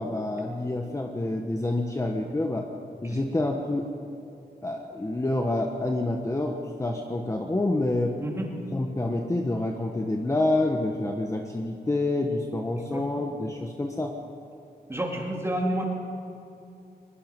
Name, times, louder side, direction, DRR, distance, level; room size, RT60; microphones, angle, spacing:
voice 1, 0.0-2.7 3.0-3.9 4.6-8.2 8.7-14.1, left 2 dB, 20° left, 2 dB, 1.3 m, -28 dB
voice 2, 14.9-15.9, right 1 dB, 15° right, -1 dB, 3.4 m, -29 dB
22.0 x 21.5 x 5.4 m, 2.7 s
wide cardioid pair, 125°, 17 cm